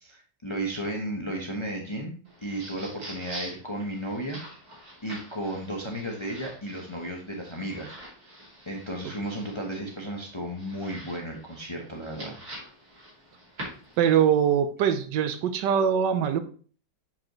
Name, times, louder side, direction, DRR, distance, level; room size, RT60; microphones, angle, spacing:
voice 1, 0.0-4.4 5.0-7.9 8.7-12.4, right 1 dB, 25° left, 0 dB, 0.7 m, -34 dB
sound 1, 2.2-14.3, right 1 dB, 50° right, 3.0 m, -45 dB
voice 2, 14.0-16.4, right 8 dB, 70° right, 10 dB, 1.3 m, -22 dB
7.3 x 5.0 x 3.0 m, 0.41 s
omnidirectional pair, 2.0 m